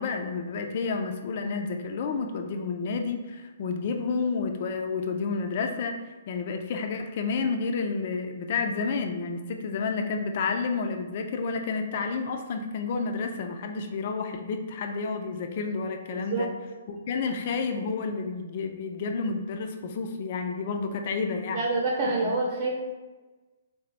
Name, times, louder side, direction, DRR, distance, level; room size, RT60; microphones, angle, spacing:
voice 1, 0.0-6.0 6.3-16.5 16.9-21.6 22.2-22.3, left 4 dB, 50° left, 5 dB, 0.4 m, -30 dB
voice 2, 16.1-16.5 21.5-22.7, right 3 dB, 45° right, -3 dB, 0.8 m, -27 dB
3.5 x 2.8 x 3.3 m, 1.2 s
figure-of-eight pair, 125°, 0 cm